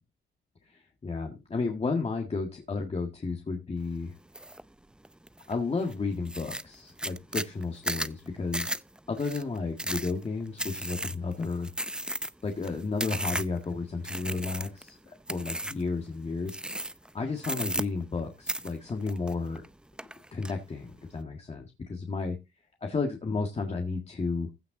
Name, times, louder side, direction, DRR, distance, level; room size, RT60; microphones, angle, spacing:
voice 1, 0.7-4.1 5.5-8.7 9.1-11.7 12.4-15.0 15.3-16.6 17.1-19.6 20.3-22.4 22.8-24.5, left 4 dB, 30° left, 2 dB, 1.8 m, -32 dB
sound 1, 4.3-4.6 5.0-5.5 5.9-6.0 6.3-13.6 14.0-14.9 15.3-15.9 16.5-17.1 17.4-18.2 18.5-19.7 20.0-20.5, right 1 dB, 5° right, 0.5 m, -34 dB
15.5 x 5.8 x 3.9 m, 0.25 s
cardioid pair, 90°, 20 cm